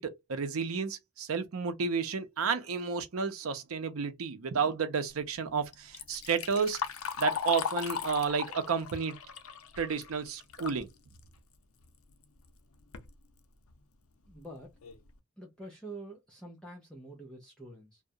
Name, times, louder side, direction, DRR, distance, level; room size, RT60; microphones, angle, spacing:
voice 1, 0.0-6.8 7.2-9.2 9.8-10.9, right 5 dB, 85° right, 0.6 m, -31 dB
Liquid, 5.7-10.8 11.2-11.3 12.2-12.3 12.7-13.1 13.7-13.8 14.3-14.4 14.8-15.1, left 7 dB, 85° left, 0.5 m, -37 dB
voice 2, 14.3-14.7 15.4-18.0, right 2 dB, 5° left, 0.6 m, -46 dB
2.4 x 2.0 x 2.6 m
head